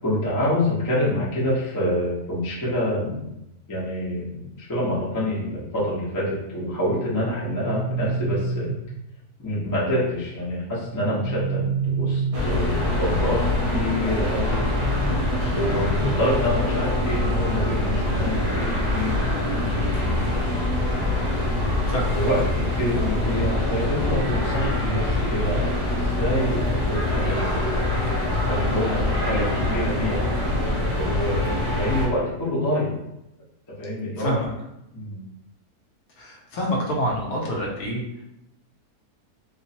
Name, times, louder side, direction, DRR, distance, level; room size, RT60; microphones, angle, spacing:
voice 1, 0.0-3.3 3.7-8.7 9.4-14.6 15.6-20.6 22.1-27.7 28.5-30.6 31.0-33.0 33.8-34.4 34.9-35.2, left 1 dB, 20° left, -7 dB, 0.5 m, -27 dB
sound 1, 7.2-9.2 10.8-12.9 14.5-16.6, right 4 dB, 80° right, 1.1 m, -29 dB
sound 2, 12.3-32.1, left 1 dB, 60° right, 0.3 m, -24 dB
voice 2, 21.9-22.2 34.2-34.5 36.1-38.0, equal, 70° left, -2 dB, 1.1 m, -26 dB
2.9 x 2.0 x 2.7 m, 0.85 s
omnidirectional pair, 1.7 m